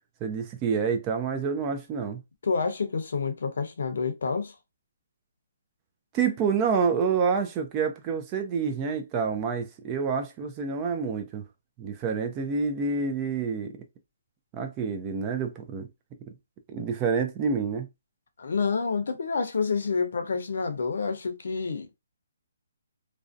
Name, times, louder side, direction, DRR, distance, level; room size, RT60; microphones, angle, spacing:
voice 1, 0.2-2.2 6.1-11.4 11.8-13.7 14.5-15.9 16.7-17.9, right 5 dB, 20° right, 0.3 m, -28 dB
voice 2, 2.4-4.5 18.4-21.9, left 5 dB, 65° left, 0.6 m, -28 dB
2.5 x 2.0 x 2.5 m
hypercardioid pair, 170°, 0 cm